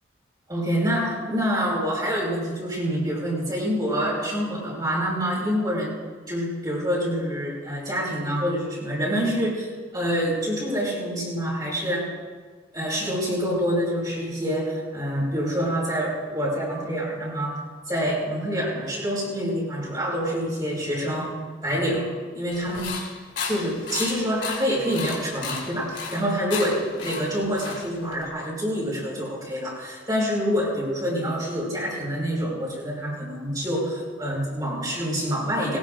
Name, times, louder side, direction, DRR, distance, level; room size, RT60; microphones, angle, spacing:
voice 1, 0.5-5.9 6.3-12.2 12.7-17.6 17.9-23.0 23.4-35.8, equal, 20° right, -4 dB, 5.0 m, -26 dB
sound 1, 22.5-28.3, left 5 dB, 75° left, 3.4 m, -34 dB
21.5 x 19.5 x 2.6 m, 1.5 s
head